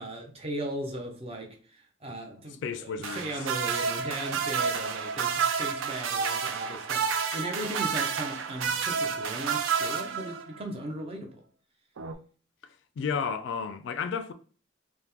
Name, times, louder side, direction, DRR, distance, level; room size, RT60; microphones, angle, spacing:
voice 1, 0.0-11.4, right 1 dB, 30° right, 0.6 m, -37 dB
voice 2, 2.6-3.4 13.0-14.3, left 6 dB, 65° left, 0.3 m, -32 dB
sound 1, 3.0-10.6 12.0-12.1, right 6 dB, 90° right, 0.4 m, -30 dB
2.9 x 2.1 x 3.4 m
head